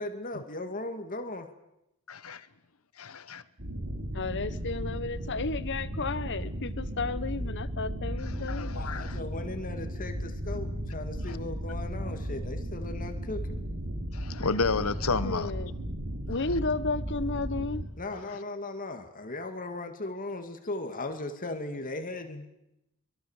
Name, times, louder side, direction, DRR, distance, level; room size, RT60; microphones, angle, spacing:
voice 1, 0.0-1.5 8.7-13.4 18.0-22.5, left 2 dB, 40° left, 6 dB, 2.3 m, -37 dB
voice 2, 2.1-2.5 3.0-3.4 8.5-9.2 11.3-11.4 14.1-15.5, left 4 dB, 75° left, 15 dB, 1.3 m, -31 dB
sound 1, 3.6-17.9, equal, 60° right, 3.9 m, -35 dB
voice 3, 4.1-8.8 15.2-15.7 16.3-17.9, left 3 dB, 55° left, 15 dB, 1.3 m, -33 dB
24.0 x 23.0 x 7.4 m, 0.86 s
head